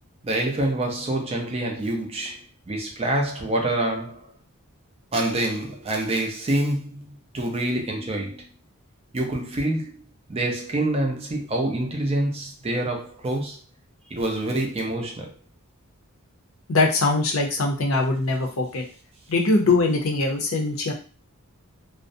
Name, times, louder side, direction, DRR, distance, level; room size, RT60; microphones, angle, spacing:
voice 1, 0.2-4.3 5.1-8.5 9.1-9.9 10.3-13.6 14.1-15.3, right 1 dB, 25° right, 0.4 m, -26 dB
voice 2, 16.7-18.8 19.3-20.9, left 3 dB, 65° left, 0.6 m, -22 dB
2.4 x 2.0 x 2.6 m
head